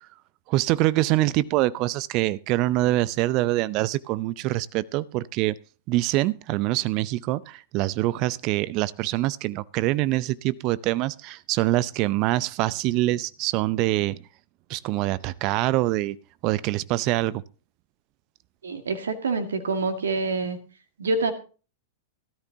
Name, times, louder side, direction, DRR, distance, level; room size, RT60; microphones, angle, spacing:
voice 1, 0.5-5.5 5.9-14.2 14.7-16.2 16.4-17.4, right 17 dB, 40° right, 19 dB, 0.6 m, -24 dB
voice 2, 18.6-20.6 21.0-21.3, right 3 dB, 70° right, 7 dB, 1.9 m, -26 dB
17.0 x 13.5 x 2.8 m, 0.36 s
figure-of-eight pair, 95°, 0 cm